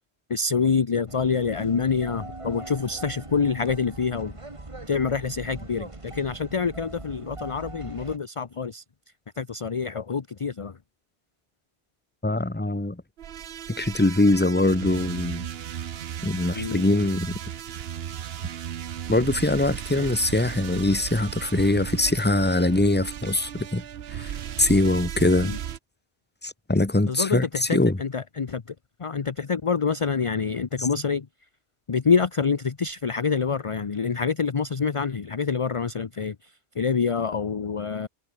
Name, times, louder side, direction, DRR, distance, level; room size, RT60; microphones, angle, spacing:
voice 1, 0.3-4.3 4.9-8.8 9.4-10.7 16.5-16.8 20.0-20.1 25.4-25.6 27.1-28.6 29.0-31.3 31.9-36.3 36.8-38.1, left 5 dB, 35° left, 0.7 m, -26 dB
sound 1, 1.1-8.2, right 2 dB, 30° right, 2.1 m, -41 dB
voice 2, 12.2-13.0 13.8-15.4 16.2-17.3 19.1-23.8 24.1-24.3 24.6-25.5 26.4-28.0 30.8-30.9, left 2 dB, 10° left, 1.1 m, -22 dB
sound 2, 13.2-25.8, right 10 dB, 65° right, 0.9 m, -35 dB
omnidirectional pair, 1.1 m